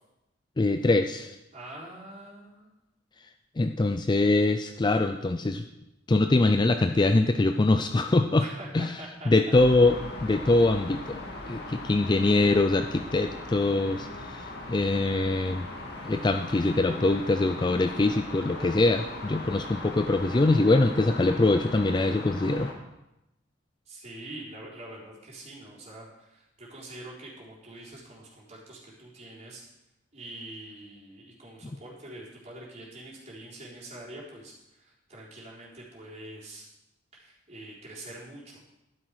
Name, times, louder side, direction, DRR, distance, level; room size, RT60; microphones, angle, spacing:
voice 1, 0.6-1.3 3.6-5.6 6.1-8.4 8.7-8.9 9.3-10.0 10.2-11.2 11.5-14.1 14.7-15.7 16.0-22.7, left 2 dB, 25° left, 7 dB, 0.4 m, -23 dB
voice 2, 1.5-2.7 8.4-9.3 23.9-29.6 30.1-36.7 37.1-38.6, right 1 dB, 35° right, -6 dB, 3.9 m, -45 dB
sound 1, 9.5-22.7, left 2 dB, 60° left, 1.9 m, -39 dB
12.0 x 10.0 x 4.9 m, 0.94 s
head